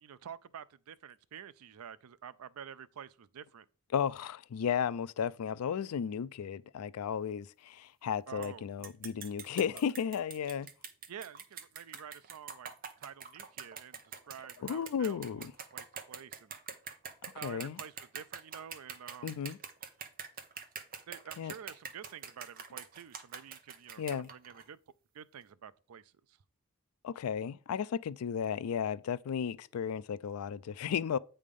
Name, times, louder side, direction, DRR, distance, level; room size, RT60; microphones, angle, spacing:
voice 1, 0.0-3.7 8.3-8.7 11.1-12.7 13.0-16.6 17.3-19.4 21.1-24.8 25.1-26.4, right 8 dB, 85° right, 0.4 m, -49 dB
voice 2, 3.9-10.7 14.6-15.5 17.2-17.8 19.2-19.6 21.4-21.5 24.0-24.3 27.0-31.2, left 7 dB, 85° left, 0.4 m, -34 dB
sound 1, 8.4-8.5 8.8-24.7, right 7 dB, 40° right, 0.7 m, -45 dB
8.3 x 3.4 x 5.3 m
head